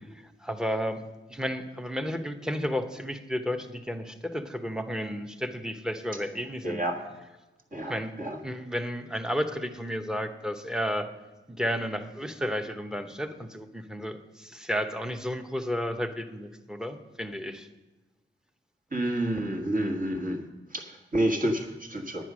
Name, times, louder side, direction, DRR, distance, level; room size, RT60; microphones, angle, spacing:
voice 1, 0.4-1.0 1.3-6.8 7.9-8.1 8.4-11.1 11.5-17.7, equal, 5° right, 8 dB, 0.9 m, -32 dB
voice 2, 6.6-7.0 7.7-8.4 18.9-22.3, right 1 dB, 40° right, 3 dB, 1.6 m, -29 dB
9.9 x 9.6 x 6.2 m, 1.1 s
wide cardioid pair, 100°, 21 cm